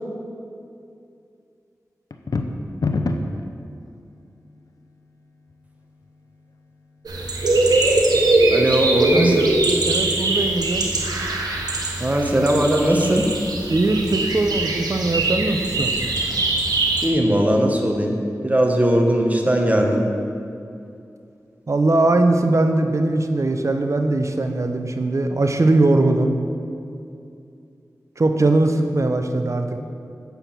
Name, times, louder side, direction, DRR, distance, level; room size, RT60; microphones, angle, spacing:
sound 1, 2.1-3.4, left 3 dB, 70° left, 0.6 m, -24 dB
sound 2, 7.1-17.1, right 2 dB, 90° right, 1.1 m, -21 dB
voice 1, 8.5-9.5 12.0-13.3 17.0-18.2 18.4-20.0, right 1 dB, 25° right, 1 dB, 1.4 m, -19 dB
voice 2, 9.1-9.6 9.8-10.9 13.7-15.9 21.7-26.3 28.2-29.9, right 2 dB, 50° right, 6 dB, 0.8 m, -20 dB
8.0 x 7.0 x 5.9 m, 2.5 s
cardioid pair, 45°, 7 cm